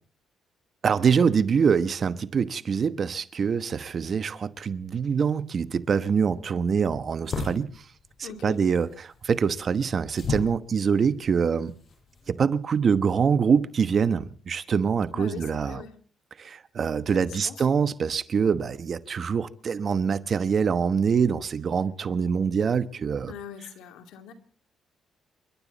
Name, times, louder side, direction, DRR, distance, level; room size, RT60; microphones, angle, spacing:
voice 1, 0.8-7.7 8.2-11.7 12.3-15.8 16.4-23.3, right 6 dB, 45° right, 1.1 m, -24 dB
sound 1, 6.1-12.3, left 4 dB, 50° left, 7.3 m, -38 dB
voice 2, 8.2-8.6 15.1-15.9 17.1-17.7 23.3-24.3, left 8 dB, 90° left, 2.6 m, -41 dB
29.0 x 12.0 x 4.1 m
cardioid pair, 90°, 0 cm